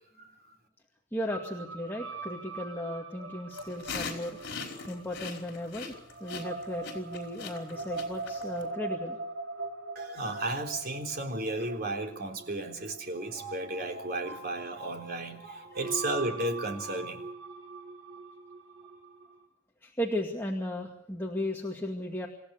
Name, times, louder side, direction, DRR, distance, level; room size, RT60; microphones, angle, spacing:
voice 1, 0.2-0.5 10.0-17.2, right 2 dB, 50° right, 3 dB, 3.7 m, -34 dB
voice 2, 1.1-4.4 4.9-5.9 6.2-9.2 15.8-15.9 19.8-22.3, left 1 dB, 10° left, 0 dB, 2.3 m, -35 dB
sound 1, 1.3-19.4, right 3 dB, 75° right, 5.2 m, -42 dB
sound 2, 3.5-8.6, left 5 dB, 60° left, 4.9 m, -40 dB
27.5 x 15.0 x 8.2 m, 0.68 s
head